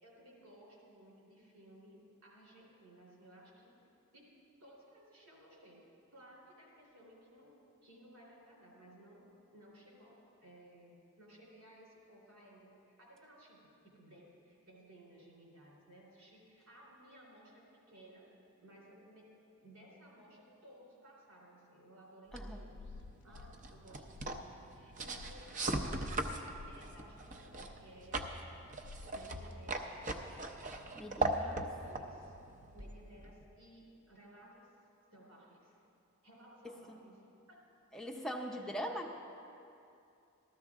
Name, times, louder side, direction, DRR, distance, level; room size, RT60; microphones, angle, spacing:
voice 1, 0.0-3.8 4.1-4.3 4.6-5.8 6.1-7.6 7.8-9.2 9.5-18.3 18.6-19.3 19.6-24.4 24.7-26.4 26.7-28.2 29.1-30.1 31.4-32.4 32.7-34.7 35.1-35.8 36.2-37.2 37.5-37.6 38.5-38.7, right 1 dB, 80° right, -3 dB, 3.4 m, -58 dB
sound 1, 22.3-33.4, right 2 dB, 35° right, 0.6 m, -40 dB
sound 2, 22.7-23.6 24.2-24.5 25.1-25.4 26.5-26.8 28.8-29.2, left 3 dB, 90° left, 0.3 m, -51 dB
voice 2, 30.9-31.6 36.9-37.0 37.9-39.2, equal, ahead, 1 dB, 0.7 m, -41 dB
13.5 x 13.5 x 3.6 m, 2.7 s
head